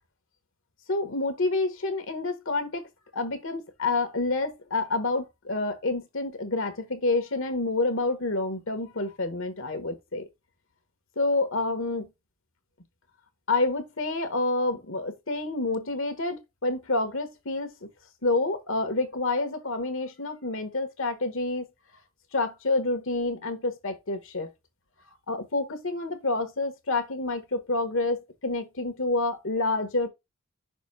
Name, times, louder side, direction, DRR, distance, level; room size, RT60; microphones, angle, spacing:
voice 1, 0.9-2.8 3.1-10.2 11.1-12.1 13.5-17.9 18.2-21.7 22.3-24.5 25.3-30.1, left 2 dB, 65° left, 1.4 m, -28 dB
6.1 x 2.9 x 5.6 m
head